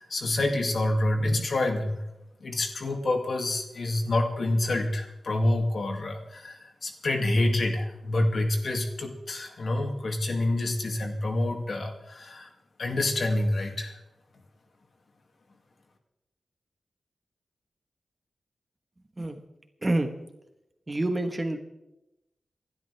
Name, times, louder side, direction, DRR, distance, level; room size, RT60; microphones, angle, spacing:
voice 1, 0.0-2.0 2.4-12.5 12.8-14.0, left 1 dB, 60° left, 2 dB, 2.5 m, -27 dB
voice 2, 20.9-21.6, right 1 dB, 25° right, 6 dB, 1.5 m, -27 dB
28.0 x 12.0 x 3.5 m, 0.93 s
wide cardioid pair, 110°, 0 cm